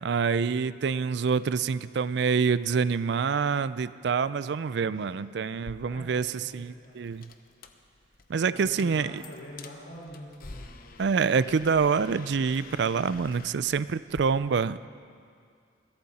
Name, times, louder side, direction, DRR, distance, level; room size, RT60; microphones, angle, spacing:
voice 1, 0.0-7.3 8.3-9.2 11.0-14.9, right 5 dB, 60° right, 16 dB, 0.4 m, -26 dB
voice 2, 4.7-5.2 5.9-7.0 8.5-10.6, equal, 80° left, -4 dB, 5.0 m, -45 dB
sound 1, 5.5-14.2, left 3 dB, 50° left, 0.8 m, -49 dB
22.0 x 15.5 x 4.2 m, 2.2 s
head